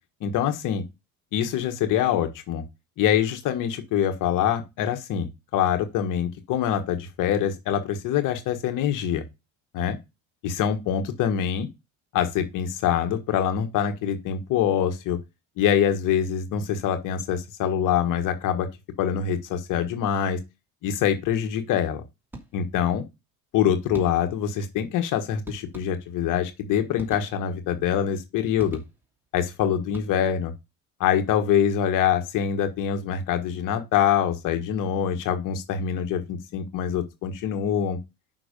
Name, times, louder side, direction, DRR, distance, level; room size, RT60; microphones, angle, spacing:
voice 1, 0.2-0.8 1.3-2.6 3.0-5.3 5.5-9.2 9.7-10.0 10.4-11.7 12.1-15.2 15.6-18.7 19.0-20.4 20.8-22.0 22.5-23.0 23.5-28.8 29.3-30.5 31.0-38.0, left 9 dB, 60° left, 1.5 m, -24 dB
sound 1, 22.3-22.9 23.9-24.5 25.4-26.3 26.9-27.7 28.6-29.3 29.8-30.5, right 2 dB, 5° right, 2.7 m, -44 dB
6.0 x 6.0 x 5.2 m
cardioid pair, 120°, 35 cm